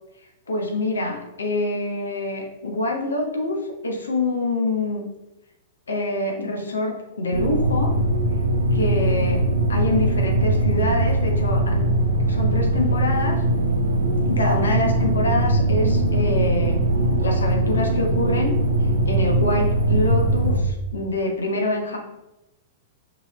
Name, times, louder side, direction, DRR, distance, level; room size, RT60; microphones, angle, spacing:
voice 1, 0.5-3.6 3.8-5.0 5.9-7.9 8.7-9.4 9.7-11.9 12.3-13.4 14.3-16.8 17.2-18.5 19.1-22.0, left 2 dB, 75° left, 1 dB, 1.0 m, -25 dB
sound 1, 7.3-20.6, right 1 dB, 85° right, 0.9 m, -21 dB
5.1 x 3.2 x 3.1 m, 0.94 s
figure-of-eight pair, 100°, 0 cm